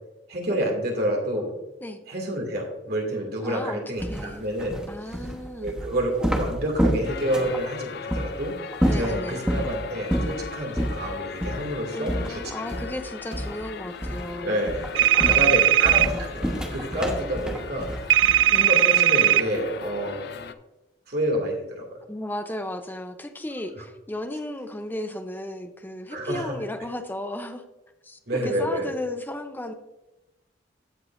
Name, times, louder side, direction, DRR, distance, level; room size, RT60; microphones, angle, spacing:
voice 1, 0.3-1.5 2.1-4.8 5.6-8.5 8.9-12.4 14.4-20.3 21.1-21.8 23.8-23.9 26.1-26.5 28.3-28.9, right 1 dB, 60° right, 0 dB, 2.5 m, -28 dB
voice 2, 3.4-4.4 4.9-5.7 8.9-9.5 11.9-14.6 15.2-15.8 18.5-18.7 22.1-27.6 28.0-29.7, left 1 dB, 10° left, 7 dB, 0.7 m, -34 dB
sound 1, 4.0-7.6 8.1-8.3 8.7-9.7 10.1-10.4 10.7-11.0 11.4-11.6 12.1-13.0 13.3-13.7 14.0-14.3 14.7-18.6, equal, 5° right, 1.1 m, -28 dB
sound 2, 7.0-20.5, left 6 dB, 60° left, 0.5 m, -39 dB
sound 3, 15.0-16.1 18.1-19.4, right 12 dB, 85° right, 0.3 m, -18 dB
16.0 x 5.4 x 2.6 m, 1.0 s
head